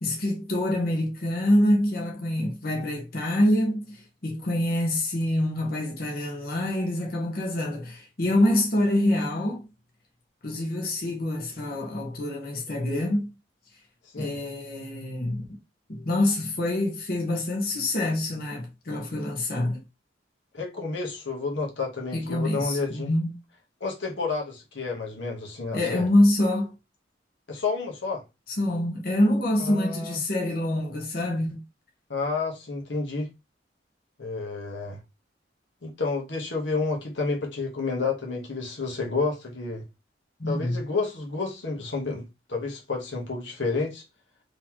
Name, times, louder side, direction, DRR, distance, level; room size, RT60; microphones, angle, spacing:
voice 1, 0.0-9.7 10.4-13.3 14.2-15.6 15.9-19.8 22.1-23.3 25.7-26.7 28.5-31.6 40.4-40.8, left 1 dB, 50° left, 1.1 m, -26 dB
voice 2, 20.5-23.1 23.8-26.0 27.5-28.2 29.7-30.2 32.1-33.3 34.2-35.0 35.8-39.8 40.5-42.2 42.5-44.0, left 4 dB, 80° left, 1.2 m, -30 dB
3.8 x 3.0 x 2.9 m
head